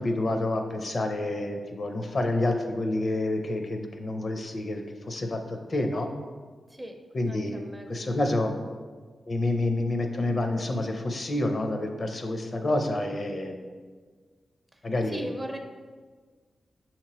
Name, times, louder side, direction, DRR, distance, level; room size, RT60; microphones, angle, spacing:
voice 1, 0.0-6.1 7.1-7.6 7.9-8.5 9.3-13.6 14.8-15.3, left 2 dB, 45° left, 4 dB, 0.5 m, -28 dB
voice 2, 6.7-7.0 7.3-8.5 14.7-15.6, right 1 dB, 15° right, 4 dB, 0.4 m, -40 dB
6.3 x 2.9 x 2.9 m, 1.5 s
wide cardioid pair, 95°, 0 cm